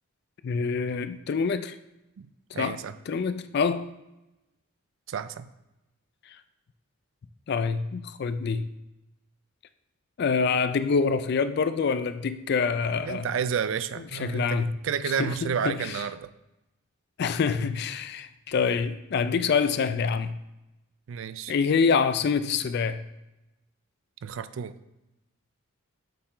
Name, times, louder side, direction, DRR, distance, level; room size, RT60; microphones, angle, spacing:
voice 1, 0.4-1.8 2.6-2.8 3.1-3.9 6.3-6.4 7.5-8.7 10.2-13.3 14.2-14.7 15.2-16.0 17.2-20.4 21.5-23.0, left 5 dB, 50° left, 0.3 m, -26 dB
voice 2, 2.5-2.9 5.1-5.5 12.9-16.3 21.1-21.5 24.2-24.7, right 7 dB, 65° right, 0.3 m, -31 dB
6.7 x 4.3 x 3.7 m
head